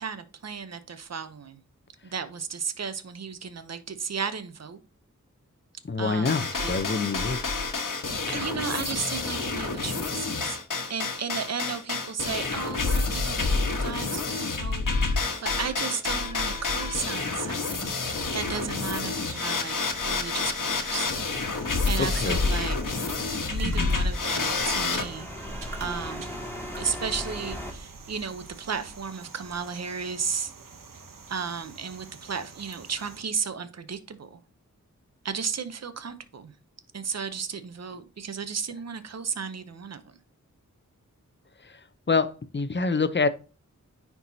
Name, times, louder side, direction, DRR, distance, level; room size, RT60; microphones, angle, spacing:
voice 1, 0.0-1.6 2.0-4.8 6.0-6.8 8.3-10.6 10.9-17.9 18.3-19.8 20.1-21.1 21.9-23.0 23.5-25.3 25.8-26.2 26.8-30.5 31.3-34.4 35.2-36.5 36.9-40.0, right 6 dB, 55° right, 0.8 m, -34 dB
voice 2, 5.9-7.4 20.9-21.0 22.0-22.4 23.6-23.9 42.1-43.3, left 4 dB, 35° left, 0.7 m, -26 dB
sound 1, 6.3-25.1, left 4 dB, 80° left, 1.3 m, -28 dB
sound 2, 16.5-33.2, right 3 dB, 90° right, 0.9 m, -45 dB
sound 3, 22.1-27.7, equal, 10° left, 1.9 m, -39 dB
9.6 x 4.7 x 2.7 m
wide cardioid pair, 65°, 32 cm